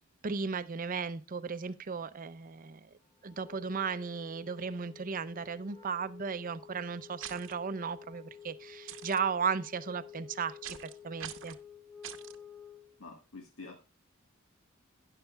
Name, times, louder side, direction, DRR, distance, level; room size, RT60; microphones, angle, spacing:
voice 1, 0.2-2.9 3.2-11.6, right 5 dB, 40° right, 0.6 m, -35 dB
Wind instrument woodwind instrument, 3.2-13.0, left 7 dB, 20° left, 3.3 m, -52 dB
sound 1, 7.2-7.5 8.9-9.2 10.6-10.9 11.2-11.6 12.0-12.4, right 10 dB, 65° right, 0.9 m, -44 dB
voice 2, 13.0-13.8, left 3 dB, 80° left, 1.5 m, -47 dB
12.5 x 10.0 x 2.3 m
head